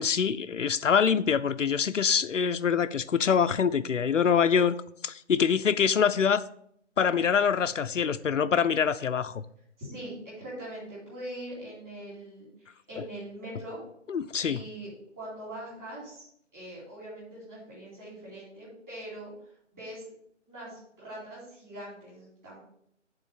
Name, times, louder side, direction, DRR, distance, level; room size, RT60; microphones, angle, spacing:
voice 1, 0.0-4.7 5.0-6.4 7.0-9.4 13.0-13.1 14.1-14.6, left 7 dB, 85° left, 0.5 m, -25 dB
voice 2, 5.7-6.0 9.8-13.8 14.4-14.9 15.2-16.3 16.5-19.3 19.7-20.0 20.5-22.6, right 1 dB, 10° right, 2.4 m, -42 dB
8.7 x 3.7 x 5.4 m
figure-of-eight pair, 160°, 36 cm